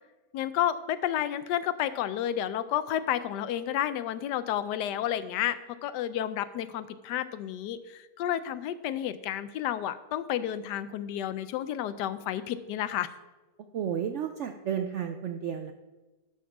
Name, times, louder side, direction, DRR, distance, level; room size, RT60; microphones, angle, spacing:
voice 1, 0.3-13.1, left 11 dB, 90° left, 14 dB, 1.2 m, -31 dB
voice 2, 13.7-15.7, right 8 dB, 75° right, 6 dB, 0.6 m, -32 dB
11.5 x 4.4 x 5.9 m, 1.2 s
omnidirectional pair, 1.8 m